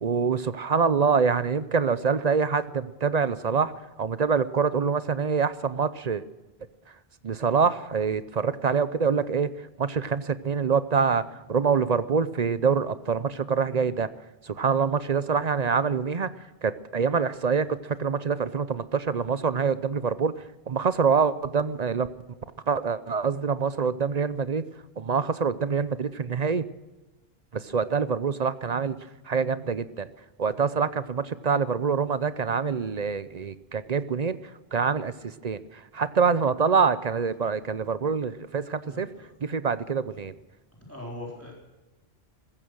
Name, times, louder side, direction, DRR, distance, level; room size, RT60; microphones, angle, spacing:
voice 1, 0.0-3.7 4.0-6.2 7.2-9.5 9.8-11.2 11.5-14.1 14.5-16.3 16.6-20.3 20.7-22.1 22.7-24.6 25.0-26.6 27.5-29.0 29.3-30.1 30.4-34.4 34.7-35.1 35.4-35.6 35.9-39.1 39.4-40.3, right 5 dB, 45° right, 15 dB, 0.7 m, -25 dB
voice 2, 38.9-39.3 40.9-41.6, left 1 dB, 15° left, -2 dB, 4.2 m, -40 dB
15.5 x 14.5 x 6.3 m, 1.1 s
omnidirectional pair, 1.0 m